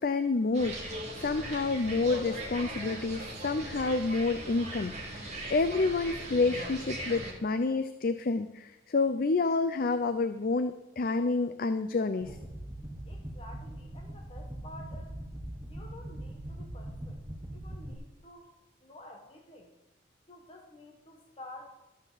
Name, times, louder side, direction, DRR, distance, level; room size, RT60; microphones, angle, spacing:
voice 1, 0.0-12.4, left 3 dB, 50° left, 9 dB, 0.5 m, -29 dB
sound 1, 0.5-7.3, right 1 dB, 35° right, 2.4 m, -39 dB
sound 2, 12.2-17.9, right 1 dB, 20° right, 1.2 m, -41 dB
voice 2, 13.0-15.2 15.7-17.2 17.5-18.5 18.8-19.7 20.3-21.8, left 1 dB, 30° left, 1 dB, 1.3 m, -50 dB
12.5 x 6.4 x 7.4 m, 0.99 s
head